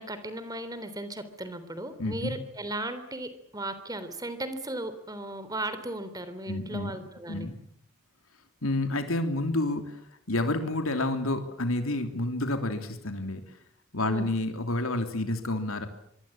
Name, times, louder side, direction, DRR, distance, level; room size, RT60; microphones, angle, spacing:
voice 1, 0.0-7.5 14.0-14.3, right 1 dB, 15° right, 12 dB, 3.4 m, -36 dB
voice 2, 2.0-2.3 6.5-7.0 7.3-7.6 8.6-10.0 10.3-13.4 13.9-15.9, left 2 dB, 85° left, 7 dB, 3.2 m, -29 dB
25.5 x 24.0 x 8.7 m, 0.68 s
head